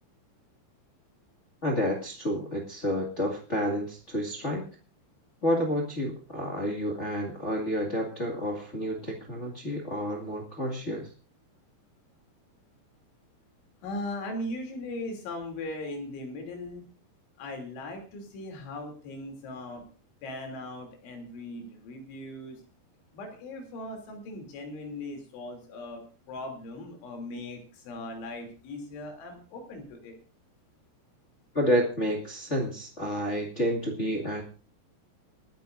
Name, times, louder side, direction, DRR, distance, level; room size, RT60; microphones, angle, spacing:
voice 1, 1.6-4.6 5.4-11.1 31.5-34.4, equal, 50° left, 1 dB, 0.8 m, -29 dB
voice 2, 13.8-16.8 17.4-19.8 20.2-22.6 23.1-30.2, left 1 dB, 80° left, 3 dB, 5.5 m, -39 dB
28.0 x 10.0 x 2.6 m, 0.36 s
omnidirectional pair, 5.3 m